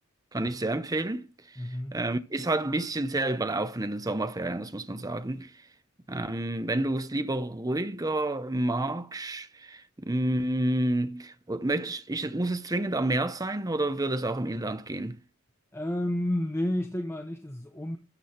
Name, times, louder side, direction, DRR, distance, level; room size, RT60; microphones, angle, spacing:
voice 1, 0.3-5.5 6.1-15.2, right 1 dB, 15° right, 0.7 m, -29 dB
voice 2, 1.6-2.0 15.7-18.0, left 1 dB, 10° left, 0.9 m, -30 dB
13.0 x 7.6 x 4.4 m
head